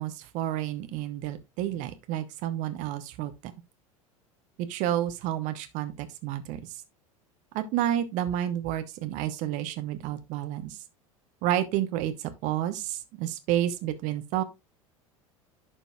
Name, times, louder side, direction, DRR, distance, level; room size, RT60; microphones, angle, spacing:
voice 1, 0.0-3.5 4.6-6.6 7.5-10.8 11.4-14.4, right 12 dB, 45° right, 1.0 m, -30 dB
11.0 x 5.2 x 2.4 m
figure-of-eight pair, 75°, 18 cm